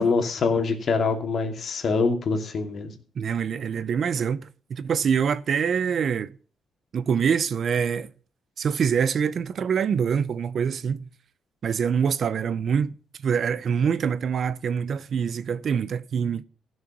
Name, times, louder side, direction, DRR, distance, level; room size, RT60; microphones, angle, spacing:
voice 1, 0.0-2.9, left 4 dB, 50° left, 2.4 m, -24 dB
voice 2, 3.2-6.3 6.9-8.1 8.6-11.1 11.6-12.9 13.2-16.4, right 7 dB, 55° right, 0.6 m, -25 dB
15.5 x 6.4 x 6.0 m
cardioid pair, 90°, 0 cm